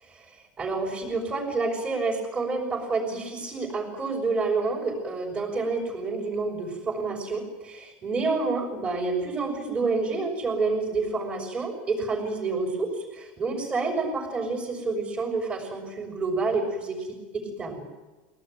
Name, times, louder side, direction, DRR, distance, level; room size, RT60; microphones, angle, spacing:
voice 1, 0.2-17.9, right 3 dB, 20° right, -3 dB, 5.8 m, -29 dB
24.5 x 18.0 x 9.3 m, 1.2 s
supercardioid pair, 145°, 6 cm